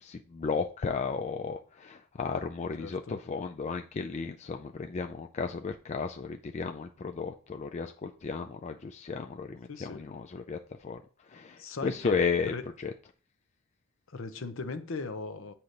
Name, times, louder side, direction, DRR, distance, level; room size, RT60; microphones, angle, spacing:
voice 1, 0.0-11.0 11.3-12.5 12.8-12.9, left 5 dB, 30° left, 0.3 m, -34 dB
voice 2, 2.8-3.2 9.7-10.0 11.6-12.6 14.1-15.5, left 3 dB, 60° left, 0.7 m, -38 dB
8.0 x 2.9 x 5.0 m
head